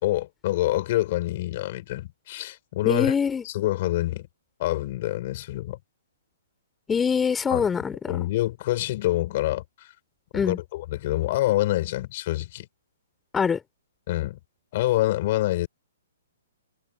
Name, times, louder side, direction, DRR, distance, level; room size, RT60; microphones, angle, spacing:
voice 1, 0.0-3.1 3.5-4.3 4.6-5.8 7.5-7.7 8.1-9.9 10.3-12.7 14.1-14.4 14.7-15.7, left 16 dB, 45° left, 5.2 m, -26 dB
voice 2, 2.9-3.4 6.9-8.3 10.3-10.6 13.3-13.6, left 6 dB, 10° left, 4.4 m, -24 dB
hypercardioid pair, 130°, 0 cm